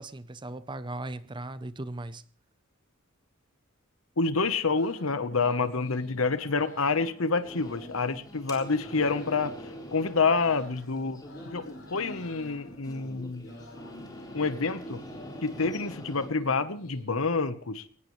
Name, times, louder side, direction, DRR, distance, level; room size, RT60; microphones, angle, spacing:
voice 1, 0.0-2.2, right 2 dB, 20° right, 14 dB, 0.7 m, -38 dB
voice 2, 4.2-9.5 9.9-11.2 11.5-13.4 14.3-15.0 15.4-17.8, left 4 dB, 70° left, 13 dB, 1.1 m, -28 dB
sound 1, 4.6-17.0, left 2 dB, 90° left, 6.1 m, -51 dB
sound 2, 7.4-16.3, equal, 20° left, 4.0 m, -44 dB
21.5 x 18.0 x 3.2 m, 0.43 s
head